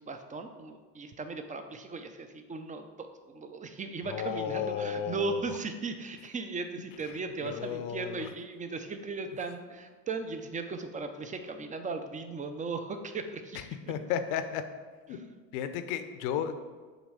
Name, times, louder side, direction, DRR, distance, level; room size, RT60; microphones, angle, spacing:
voice 1, 0.0-13.9 15.1-15.2, right 3 dB, 15° right, 7 dB, 0.6 m, -37 dB
voice 2, 4.0-5.4 7.4-8.3 13.9-14.6 15.1-15.2 15.5-16.6, left 8 dB, 60° left, 9 dB, 0.9 m, -33 dB
8.0 x 3.2 x 6.3 m, 1.4 s
hypercardioid pair, 95°, 49 cm